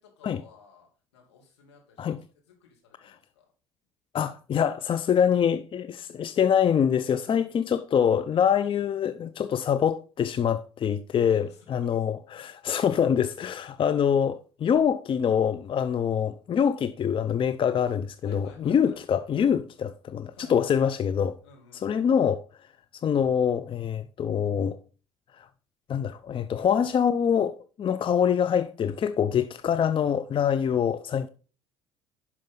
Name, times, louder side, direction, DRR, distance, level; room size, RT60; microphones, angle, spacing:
voice 1, 0.0-2.2 2.5-3.5 11.2-12.0 12.3-12.8 13.3-13.4 18.2-19.0 20.3-21.0 21.4-22.1 30.5-30.8, left 5 dB, 80° left, 2.7 m, -54 dB
voice 2, 4.1-21.4 21.8-22.4 23.0-24.8 25.4-25.5 25.9-31.3, left 8 dB, 40° left, 0.6 m, -25 dB
10.5 x 6.1 x 3.8 m
hypercardioid pair, 55°, 14 cm